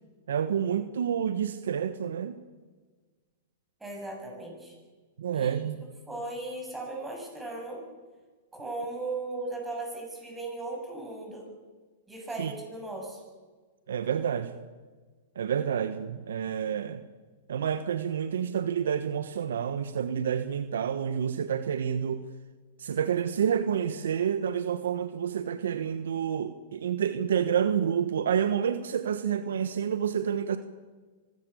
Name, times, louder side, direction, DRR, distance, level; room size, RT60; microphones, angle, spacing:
voice 1, 0.3-2.4 5.2-5.8 12.4-12.5 13.9-14.6 15.3-17.0 17.5-22.2 22.8-30.6, right 8 dB, 80° right, 11 dB, 1.2 m, -29 dB
voice 2, 3.8-4.7 5.3-5.6 6.1-7.8 8.5-11.5 12.1-13.2, right 2 dB, 10° right, 0 dB, 7.1 m, -37 dB
24.0 x 14.5 x 8.2 m, 1.4 s
hypercardioid pair, 125°, 0 cm